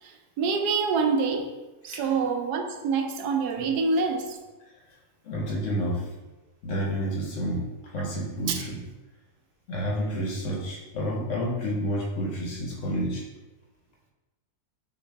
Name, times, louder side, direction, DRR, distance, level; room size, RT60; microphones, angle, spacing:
voice 1, 0.0-1.5 1.8-4.4 8.5-8.6, right 4 dB, 90° right, 4 dB, 1.2 m, -26 dB
voice 2, 5.2-6.1 6.6-7.6 7.9-8.8 9.7-13.2, equal, 60° left, -1 dB, 1.1 m, -29 dB
6.0 x 2.6 x 3.3 m, 1.1 s
omnidirectional pair, 1.6 m